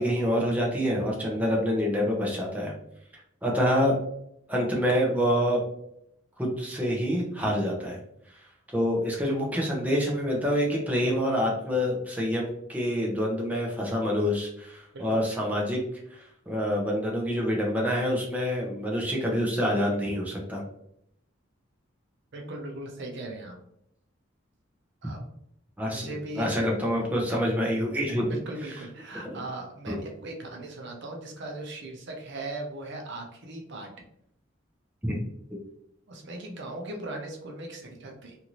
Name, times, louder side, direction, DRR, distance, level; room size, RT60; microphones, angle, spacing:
voice 1, 0.0-2.7 3.4-3.9 4.5-5.6 6.4-8.0 8.7-15.8 16.1-20.6 25.8-28.3 29.3-29.4 29.9-30.0 35.0-35.2 35.5-35.6, equal, 10° right, -3 dB, 0.6 m, -27 dB
voice 2, 22.3-23.6 25.0-25.2 25.8-26.5 28.2-33.9 36.1-38.4, right 2 dB, 60° right, 1 dB, 0.6 m, -38 dB
2.7 x 2.5 x 3.0 m, 0.75 s
head